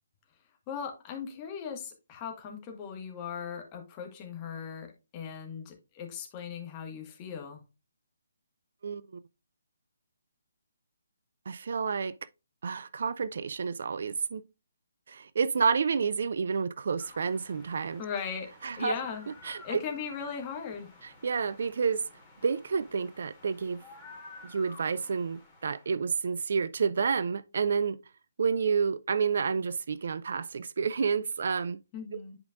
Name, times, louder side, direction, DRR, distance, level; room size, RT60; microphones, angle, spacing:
voice 1, 0.7-7.6 18.0-19.3 19.6-20.9 31.9-32.4, left 7 dB, 25° left, 1.5 m, -38 dB
voice 2, 8.8-9.2 11.5-12.1 12.6-14.4 15.1-18.0 18.6-18.9 19.4-19.8 21.0-22.1 22.4-23.8 24.4-28.0 28.4-31.8, right 5 dB, 55° right, 0.3 m, -29 dB
sound 1, 17.0-26.1, left 3 dB, 5° left, 2.5 m, -53 dB
10.5 x 5.0 x 2.4 m
figure-of-eight pair, 140°, 0 cm